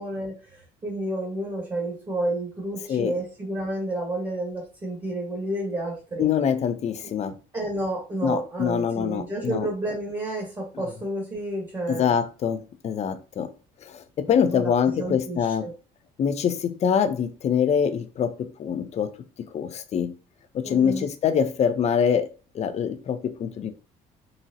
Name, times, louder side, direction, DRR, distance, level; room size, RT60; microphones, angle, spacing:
voice 1, 0.0-6.3 7.5-12.1 14.5-14.7 15.0-15.7 20.6-21.0, right 1 dB, 25° right, 1.2 m, -30 dB
voice 2, 6.2-7.4 8.2-9.7 11.9-13.5 13.8-15.7 16.2-18.3 18.6-19.1 19.5-20.1 20.5-22.3 22.5-23.7, left 7 dB, 40° left, 0.4 m, -24 dB
3.9 x 2.0 x 2.6 m
cardioid pair, 110°, 17 cm